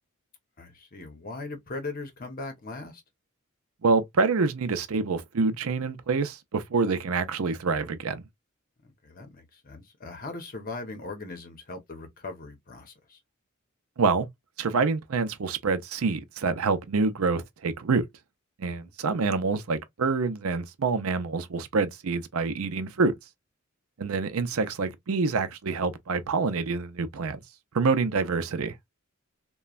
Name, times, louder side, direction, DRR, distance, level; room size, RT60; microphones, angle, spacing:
voice 1, 0.6-3.0 8.8-13.2 18.6-18.9, left 3 dB, 40° left, 0.9 m, -39 dB
voice 2, 3.8-8.2 14.0-14.3 14.6-18.0 18.6-23.1 24.0-27.4 27.7-28.7, right 4 dB, 75° right, 0.6 m, -26 dB
3.1 x 2.2 x 2.3 m
head